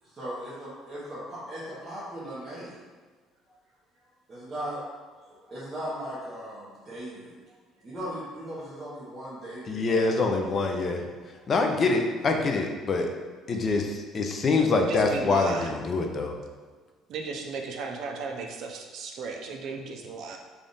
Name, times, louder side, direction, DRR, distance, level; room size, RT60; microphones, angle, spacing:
voice 1, 0.0-2.8 4.3-4.8 5.3-7.3 7.8-10.1 11.4-11.5, equal, 20° right, -11 dB, 0.9 m, -38 dB
voice 2, 9.7-11.0 11.5-13.1 13.5-16.3, left 3 dB, 30° left, 3 dB, 0.4 m, -25 dB
voice 3, 14.8-15.7 17.1-20.4, right 4 dB, 55° right, 2 dB, 0.4 m, -35 dB
3.5 x 2.4 x 3.9 m, 1.5 s
cardioid pair, 155°, 0 cm